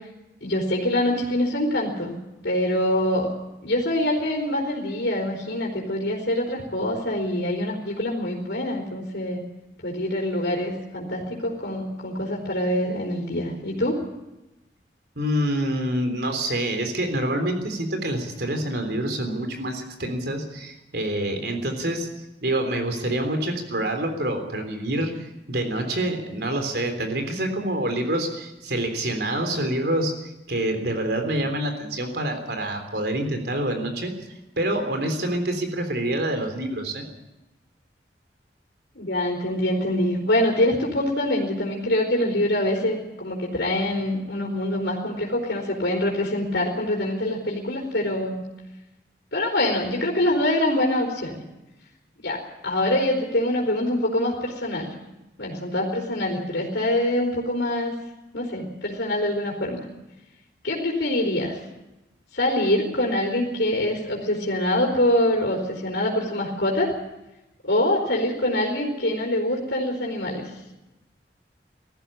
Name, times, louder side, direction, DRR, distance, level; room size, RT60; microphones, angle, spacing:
voice 1, 0.4-2.1 2.4-3.3 3.6-9.4 9.8-14.0 38.9-48.4 49.3-51.4 52.2-54.9 55.4-57.9 58.3-59.8 60.6-61.6 62.3-66.9 67.6-70.5, left 1 dB, 85° left, -2 dB, 4.1 m, -24 dB
voice 2, 15.2-22.1 22.4-34.1 34.6-37.1, right 1 dB, 65° right, 5 dB, 3.6 m, -27 dB
18.5 x 14.5 x 9.9 m, 0.96 s
head